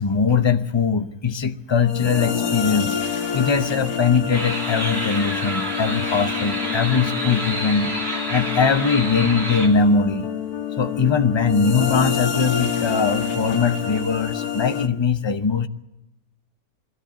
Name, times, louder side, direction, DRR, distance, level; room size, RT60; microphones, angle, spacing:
voice 1, 0.0-3.0 3.3-7.9 8.3-10.3 10.8-15.7, left 5 dB, 25° left, 8 dB, 0.6 m, -21 dB
sound 1, 1.8-14.9, left 8 dB, 85° left, 1.8 m, -27 dB
sound 2, 4.3-9.7, right 1 dB, 40° right, 3.3 m, -29 dB
22.0 x 13.5 x 10.0 m, 0.93 s
omnidirectional pair, 1.6 m